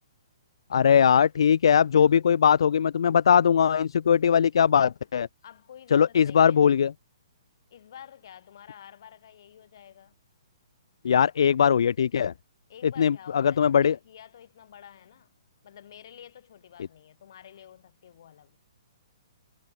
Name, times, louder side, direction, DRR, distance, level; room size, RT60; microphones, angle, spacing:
voice 1, 0.7-5.3 5.9-6.9 11.0-12.3 13.0-14.0, left 8 dB, 65° left, 0.5 m, -20 dB
voice 2, 5.4-6.7 7.7-10.1 12.7-15.3 15.6-18.6, left 9 dB, 50° left, 6.7 m, -49 dB
hypercardioid pair, 170°, 3 cm